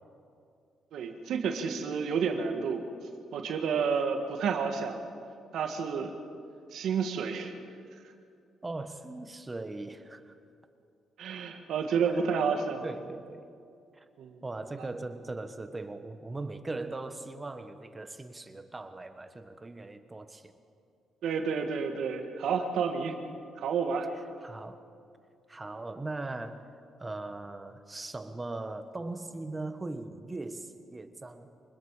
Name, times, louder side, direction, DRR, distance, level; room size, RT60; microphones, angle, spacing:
voice 1, 0.9-2.8 3.3-5.0 5.5-6.1 6.7-7.5 11.2-12.8 14.2-14.4 21.2-23.1 23.6-24.1, right 6 dB, 75° right, 5 dB, 1.8 m, -30 dB
voice 2, 8.6-10.3 12.8-13.5 13.9-14.0 14.4-20.5 24.4-24.8 25.5-26.7 27.0-31.5, right 2 dB, 20° right, 9 dB, 1.3 m, -39 dB
25.5 x 20.0 x 5.0 m, 2.4 s
cardioid pair, 90°, 0 cm